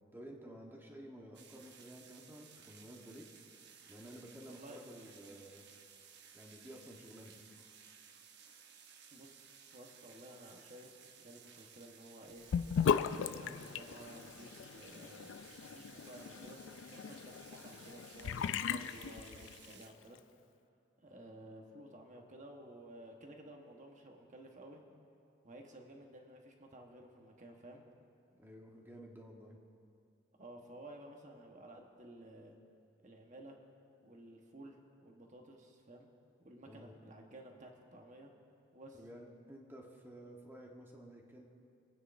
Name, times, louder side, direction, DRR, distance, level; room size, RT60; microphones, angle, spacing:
voice 1, 0.1-3.2 3.9-5.6 6.3-7.3 28.3-29.6 36.7-36.9 38.9-41.4, right 1 dB, 10° right, -1 dB, 1.2 m, -52 dB
sound 1, 1.3-19.9, right 7 dB, 60° right, 0.8 m, -58 dB
voice 2, 4.5-4.8 9.1-10.9 11.2-12.4 13.0-20.2 21.0-24.8 25.4-27.8 30.4-32.6 33.0-33.6 34.0-34.8 35.0-36.1 36.4-38.3 38.7-39.0, right 1 dB, 40° right, 2 dB, 1.3 m, -54 dB
Sink (filling or washing) / Bathtub (filling or washing), 12.5-19.8, left 7 dB, 70° left, 0.3 m, -37 dB
24.5 x 9.2 x 2.6 m, 2.5 s
head